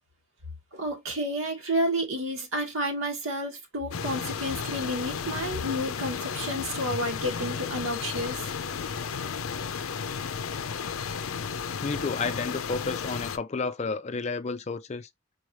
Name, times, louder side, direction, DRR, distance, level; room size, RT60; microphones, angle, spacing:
voice 1, 0.7-8.4, equal, 75° right, 1.7 m, -30 dB
sound 1, 3.9-13.4, left 6 dB, 90° left, 0.5 m, -33 dB
voice 2, 11.8-15.1, left 4 dB, 35° left, 0.4 m, -31 dB
4.6 x 3.2 x 3.1 m
head